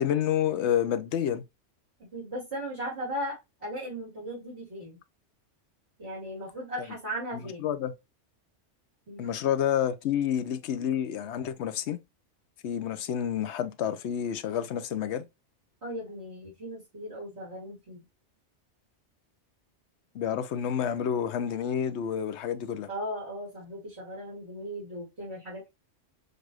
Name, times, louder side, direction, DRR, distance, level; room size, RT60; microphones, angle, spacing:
voice 1, 0.0-1.4 7.6-7.9 9.2-12.0 12.6-15.3 20.1-22.9, left 9 dB, 65° left, 0.8 m, -29 dB
voice 2, 2.0-5.0 6.0-7.7 9.1-9.3 15.8-18.0 22.9-25.7, equal, 55° right, 2.9 m, -37 dB
6.6 x 2.5 x 3.0 m
omnidirectional pair, 1.3 m